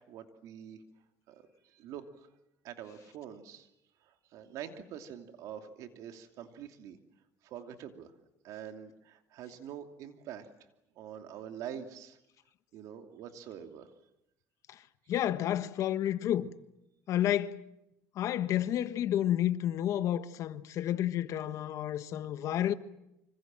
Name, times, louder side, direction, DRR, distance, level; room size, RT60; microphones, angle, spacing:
voice 1, 0.1-0.8 1.3-2.3 2.6-3.7 4.0-7.0 7.4-8.1 8.4-10.5 10.9-12.2 12.7-13.9, right 9 dB, 70° right, 2.8 m, -45 dB
voice 2, 15.1-16.5 17.1-17.6 18.1-22.7, left 11 dB, 60° left, 1.3 m, -30 dB
26.5 x 25.5 x 7.6 m
cardioid pair, 120°, 6 cm